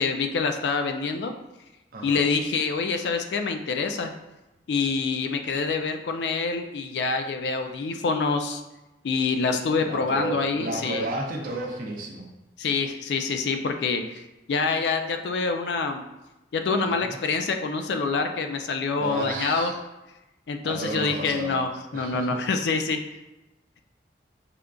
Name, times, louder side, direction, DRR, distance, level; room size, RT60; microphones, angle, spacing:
voice 1, 0.0-1.3 2.0-4.1 4.7-8.6 9.0-11.0 12.6-14.2 14.5-16.0 16.5-19.7 20.5-23.0, left 4 dB, 70° left, 6 dB, 0.3 m, -26 dB
voice 2, 1.9-2.5 9.8-12.3 16.9-17.2 19.0-19.8 20.6-21.6 21.9-22.5, right 2 dB, 50° right, 0 dB, 0.5 m, -33 dB
5.0 x 2.4 x 2.2 m, 0.99 s
head